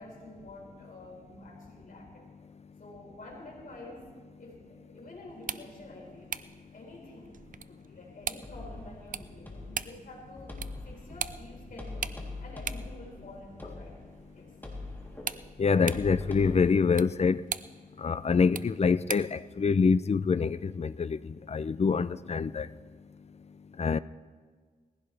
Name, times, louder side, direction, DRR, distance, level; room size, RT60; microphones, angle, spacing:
voice 1, 0.0-2.3 2.8-6.4 6.7-14.0 14.3-14.6 22.0-22.2, left 1 dB, 70° left, 4.5 m, -48 dB
sound 1, 5.3-19.4, right 7 dB, 65° right, 0.5 m, -42 dB
sound 2, 8.4-16.7, left 2 dB, 15° left, 3.3 m, -43 dB
voice 2, 15.6-17.4 18.0-22.7 23.8-24.0, left 5 dB, 45° left, 0.5 m, -26 dB
20.0 x 15.5 x 3.4 m
wide cardioid pair, 65°, 15 cm